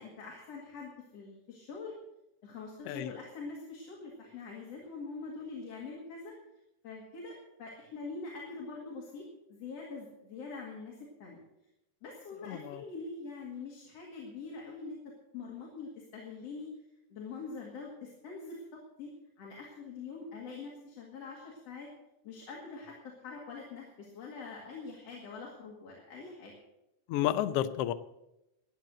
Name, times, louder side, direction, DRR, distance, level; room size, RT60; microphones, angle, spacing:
voice 1, 0.0-1.9 2.4-6.3 6.8-11.4 12.0-16.7 17.1-19.1 19.4-21.9 22.2-26.5, left 4 dB, 60° left, -2 dB, 3.1 m, -44 dB
voice 2, 12.4-12.8 27.1-27.9, left 12 dB, 75° left, 12 dB, 1.4 m, -31 dB
13.5 x 8.9 x 7.6 m, 0.90 s
omnidirectional pair, 3.3 m